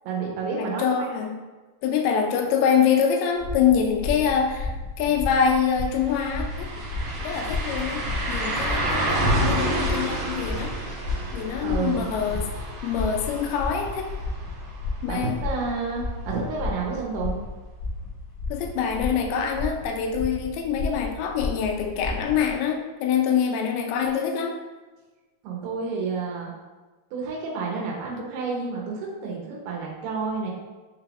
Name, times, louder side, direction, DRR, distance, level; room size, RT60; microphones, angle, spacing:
voice 1, 0.0-1.1 11.6-12.1 15.1-17.4 25.4-26.5 27.1-30.5, right 4 dB, 85° right, -2 dB, 2.8 m, -30 dB
voice 2, 0.6-1.3 1.8-6.7 7.2-10.7 11.3-12.5 12.8-14.1 15.0-15.4 18.5-24.5, left 7 dB, 90° left, 2 dB, 2.5 m, -25 dB
sound 1, 3.4-22.5, left 3 dB, 70° left, 0.9 m, -33 dB
sound 2, 5.5-5.6 5.9-15.7 16.1-16.2 18.9-19.0, right 1 dB, 70° right, 1.8 m, -29 dB
6.3 x 2.4 x 3.4 m, 1.2 s
omnidirectional pair, 4.4 m